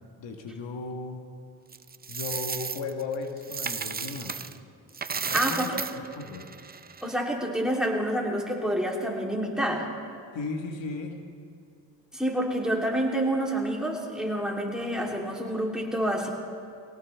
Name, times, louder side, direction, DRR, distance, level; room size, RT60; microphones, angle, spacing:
voice 1, 0.2-1.2 2.1-4.5 5.3-5.7 6.1-6.5 10.3-11.2, left 4 dB, 90° left, 4 dB, 1.5 m, -35 dB
Coin (dropping), 1.7-4.6 4.9-7.2, right 5 dB, 20° right, 0.5 m, -34 dB
voice 2, 5.3-5.8 7.0-9.9 12.1-16.3, right 1 dB, ahead, -2 dB, 3.0 m, -28 dB
23.0 x 17.5 x 3.4 m, 2.3 s
cardioid pair, 75°, 43 cm